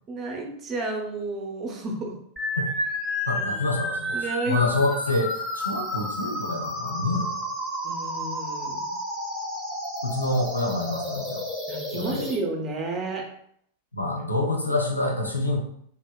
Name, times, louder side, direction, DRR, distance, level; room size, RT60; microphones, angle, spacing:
voice 1, 0.1-2.2 3.5-3.6 4.1-4.6 7.8-8.9 11.7-13.3, right 2 dB, 25° right, 1 dB, 0.5 m, -31 dB
sound 1, 2.4-12.4, left 1 dB, 10° left, 0.8 m, -31 dB
voice 2, 3.3-7.4 10.0-11.5 11.9-12.3 13.9-15.6, left 2 dB, 85° left, 1 dB, 0.4 m, -27 dB
2.8 x 2.0 x 2.2 m, 0.68 s
figure-of-eight pair, 90°, 0 cm